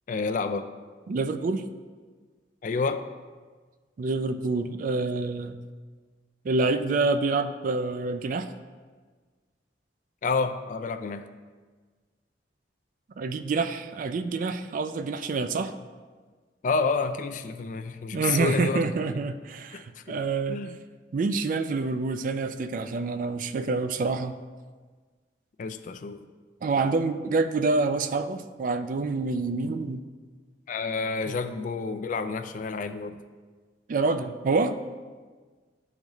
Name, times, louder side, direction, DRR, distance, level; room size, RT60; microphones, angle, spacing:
voice 1, 0.1-0.7 2.6-3.1 10.2-11.2 16.6-18.9 20.1-20.2 20.5-20.7 25.6-26.2 30.7-33.2, left 4 dB, 45° left, 9 dB, 0.3 m, -29 dB
voice 2, 1.1-1.6 4.0-5.6 6.4-8.5 13.2-15.7 18.1-20.6 21.1-24.4 26.6-30.0 31.3-31.4 33.9-34.8, right 3 dB, 50° right, 10 dB, 0.3 m, -27 dB
11.5 x 3.9 x 3.0 m, 1.4 s
head